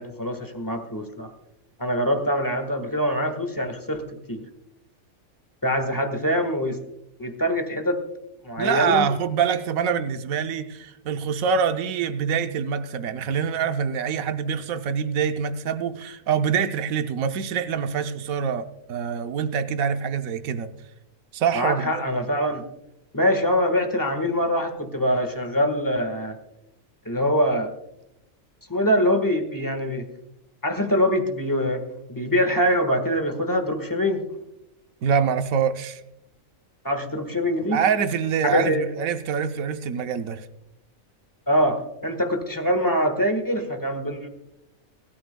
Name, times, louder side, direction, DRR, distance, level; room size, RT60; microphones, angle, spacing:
voice 1, 0.0-1.3 1.8-4.4 5.6-6.8 7.2-8.0 8.4-9.1 21.5-22.6 23.1-26.4 27.0-27.7 28.7-30.0 30.6-31.8 32.1-34.2 36.8-37.8 38.5-38.9 41.5-44.3, equal, 15° left, 7 dB, 1.4 m, -24 dB
voice 2, 8.6-20.7 21.3-22.0 35.0-36.0 37.7-40.5, right 7 dB, 80° right, 8 dB, 1.2 m, -25 dB
22.5 x 13.0 x 2.2 m, 0.88 s
omnidirectional pair, 1.4 m